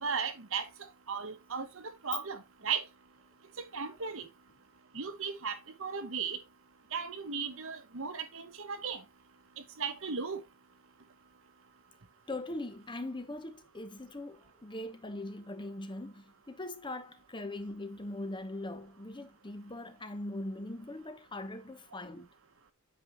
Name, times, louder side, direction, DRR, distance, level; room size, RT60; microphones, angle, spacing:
voice 1, 0.0-0.6 1.1-1.7 2.0-2.8 3.7-4.2 4.9-6.4 6.9-9.0 9.8-10.4, right 6 dB, 60° right, 1.0 m, -36 dB
voice 2, 12.3-22.3, left 1 dB, 20° left, 0.8 m, -41 dB
8.7 x 5.4 x 3.0 m
head